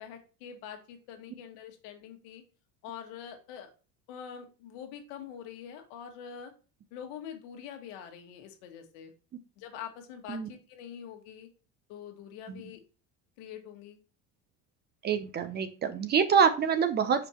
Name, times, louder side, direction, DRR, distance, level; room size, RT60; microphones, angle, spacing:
voice 1, 0.0-2.4 2.8-3.7 4.1-6.5 6.9-9.1 9.6-11.5 11.9-12.8 13.4-14.0, left 8 dB, 80° left, 5 dB, 1.5 m, -45 dB
voice 2, 15.0-17.3, right 7 dB, 25° right, 11 dB, 0.5 m, -26 dB
5.1 x 4.5 x 4.3 m, 0.35 s
cardioid pair, 145°, 37 cm